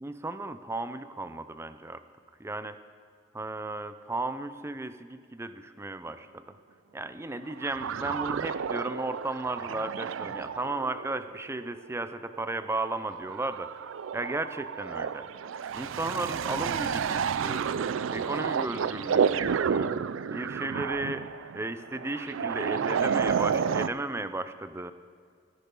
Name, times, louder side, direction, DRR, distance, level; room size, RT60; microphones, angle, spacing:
voice 1, 0.0-2.0 2.4-2.8 3.3-6.6 6.9-13.8 14.1-15.3 15.7-17.7 18.1-19.9 20.3-24.9, right 2 dB, 15° right, 12 dB, 0.5 m, -35 dB
sound 1, 7.4-23.9, right 7 dB, 75° right, 0.4 m, -31 dB
15.0 x 11.0 x 5.5 m, 2.1 s
head